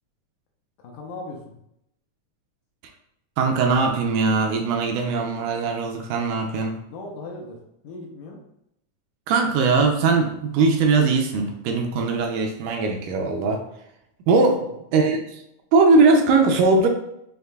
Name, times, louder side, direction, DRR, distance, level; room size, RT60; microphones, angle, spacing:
voice 1, 0.8-1.4 6.9-7.6 7.8-8.4 14.5-14.7, left 2 dB, 80° left, 0 dB, 2.1 m, -37 dB
voice 2, 3.4-6.8 9.3-13.6 14.3-14.6 14.9-15.2 15.7-16.9, right 4 dB, 80° right, 3 dB, 2.0 m, -20 dB
6.4 x 2.8 x 2.3 m, 0.79 s
omnidirectional pair, 3.9 m